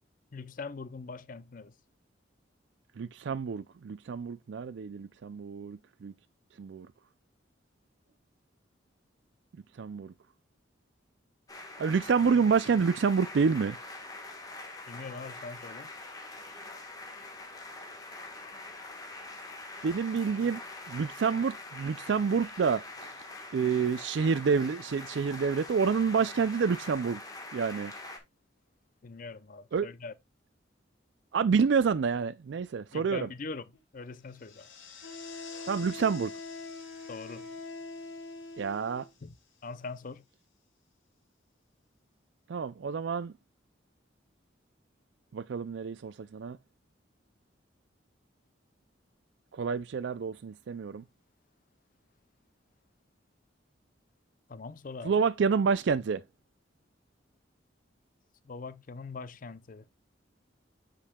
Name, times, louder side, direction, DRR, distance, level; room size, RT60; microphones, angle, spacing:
voice 1, 0.3-1.7 14.9-15.9 29.0-30.1 32.9-33.7 33.9-34.7 37.1-37.5 39.2-39.3 39.6-40.2 54.5-55.1 58.5-59.8, left 4 dB, 45° left, 0.5 m, -42 dB
voice 2, 3.0-6.1 6.6-6.9 9.8-10.1 11.8-13.8 19.8-20.6 20.9-22.8 23.5-27.2 27.5-27.9 29.7-29.9 31.3-33.3 35.7-36.3 38.6-39.1 42.5-43.3 45.3-46.6 49.5-51.0 55.0-56.2, right 5 dB, 65° right, 0.4 m, -28 dB
sound 1, 11.5-28.2, left 2 dB, 20° left, 1.3 m, -44 dB
Wind instrument woodwind instrument, 33.7-33.8 35.0-39.1, left 3 dB, 65° left, 2.1 m, -43 dB
sound 2, 34.1-40.0, left 7 dB, 85° left, 2.2 m, -52 dB
8.4 x 5.2 x 2.3 m
head